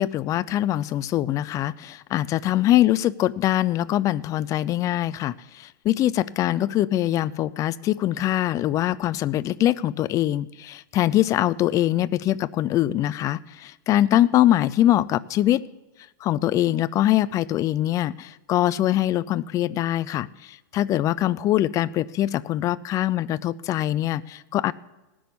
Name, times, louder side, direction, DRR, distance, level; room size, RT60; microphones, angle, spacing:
voice 1, 0.0-15.6 16.2-24.7, left 13 dB, 30° left, 17 dB, 0.4 m, -23 dB
18.0 x 6.2 x 8.4 m, 1.1 s
supercardioid pair, 135°, 11 cm